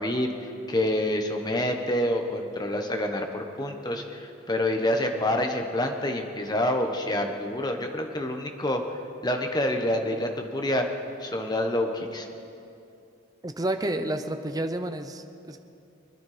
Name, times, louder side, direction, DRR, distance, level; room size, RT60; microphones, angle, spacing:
voice 1, 0.0-8.8 9.2-10.9 11.2-12.3, left 1 dB, 20° left, 4 dB, 1.1 m, -27 dB
voice 2, 13.4-15.6, right 1 dB, 20° right, 7 dB, 0.7 m, -30 dB
24.0 x 10.5 x 5.0 m, 2.6 s
head